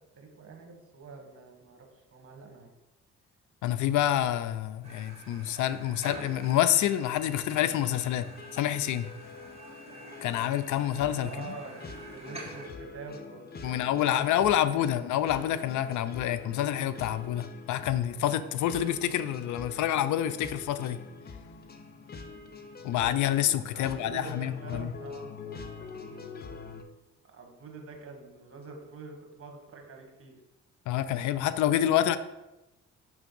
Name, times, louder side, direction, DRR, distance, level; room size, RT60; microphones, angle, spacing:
voice 1, 0.1-2.7 11.1-14.5 14.8-14.9 23.7-25.3 27.3-30.4, right 4 dB, 50° right, 3 dB, 1.5 m, -46 dB
voice 2, 3.6-8.3 8.5-9.1 10.2-11.5 13.6-21.0 22.8-24.9 30.9-32.2, left 11 dB, 75° left, 13 dB, 0.5 m, -27 dB
sound 1, 4.8-12.7, right 2 dB, 20° right, 1.3 m, -47 dB
sound 2, 7.6-26.8, left 4 dB, 30° left, 0.7 m, -46 dB
6.1 x 3.3 x 5.4 m, 0.99 s
cardioid pair, 90°, 30 cm